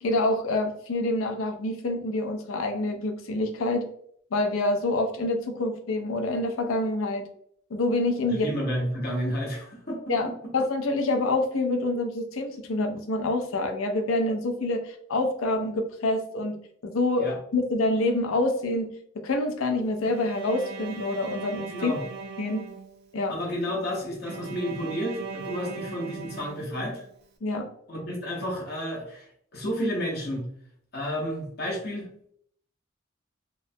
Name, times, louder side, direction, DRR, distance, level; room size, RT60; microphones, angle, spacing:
voice 1, 0.0-3.9 4.3-7.3 7.7-8.5 10.1-10.3 10.5-16.5 16.8-18.9 19.2-21.9 22.4-22.7 23.1-23.3 27.4-27.7, left 2 dB, 85° left, 4 dB, 0.5 m, -26 dB
voice 2, 8.4-10.1 17.2-17.4 21.7-22.0 23.3-27.0 27.9-29.3 29.5-30.4 30.9-32.1, equal, 50° left, -2 dB, 0.8 m, -31 dB
Bowed string instrument, 20.0-23.3 24.2-27.2, right 4 dB, 50° right, 0.4 m, -39 dB
3.0 x 2.1 x 2.6 m, 0.65 s
head